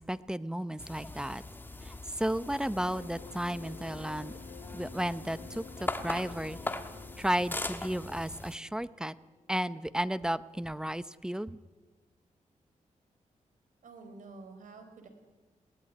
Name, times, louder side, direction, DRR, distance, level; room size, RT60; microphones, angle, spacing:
voice 1, 0.0-1.4 1.8-4.3 4.7-6.6 7.2-9.1 9.5-11.6, right 1 dB, 5° right, 15 dB, 0.7 m, -33 dB
sound 1, 0.8-8.6, left 2 dB, 15° left, 1.5 m, -41 dB
sound 2, 2.7-9.7, left 7 dB, 70° left, 1.5 m, -51 dB
voice 2, 13.8-15.1, right 3 dB, 80° right, 6 dB, 4.6 m, -49 dB
21.5 x 18.0 x 9.8 m, 1.3 s
wide cardioid pair, 110°, 13 cm